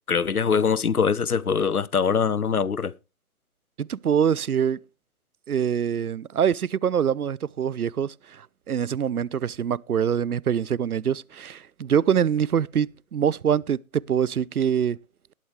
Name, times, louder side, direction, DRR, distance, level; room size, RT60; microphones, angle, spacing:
voice 1, 0.1-2.9, left 6 dB, 90° left, 0.8 m, -23 dB
voice 2, 3.8-4.8 5.5-15.0, right 8 dB, 80° right, 0.6 m, -24 dB
19.0 x 8.3 x 3.1 m
figure-of-eight pair, 145°, 43 cm